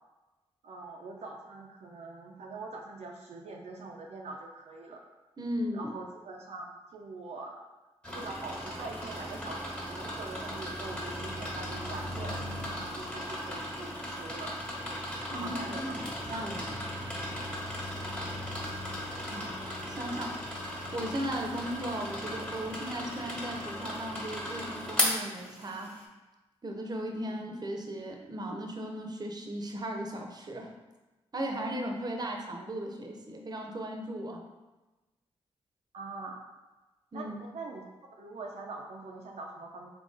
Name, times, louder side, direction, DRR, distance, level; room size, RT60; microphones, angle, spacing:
voice 1, 0.6-5.0 5.7-7.6 8.1-12.4 13.0-14.6 15.3-16.0 16.3-16.7 18.0-18.1 27.3-27.4 35.9-36.4 37.1-37.8 38.2-39.9, right 3 dB, 75° right, 0 dB, 0.5 m, -43 dB
voice 2, 5.4-5.9 15.3-16.8 19.3-19.6 19.9-20.4 20.9-25.9 26.6-30.7 31.3-34.4 37.1-37.3, equal, 35° right, 2 dB, 0.7 m, -36 dB
sound 1, 8.0-26.0, equal, 10° left, 1.3 m, -36 dB
3.8 x 2.8 x 3.8 m, 1.1 s
cardioid pair, 55°, 11 cm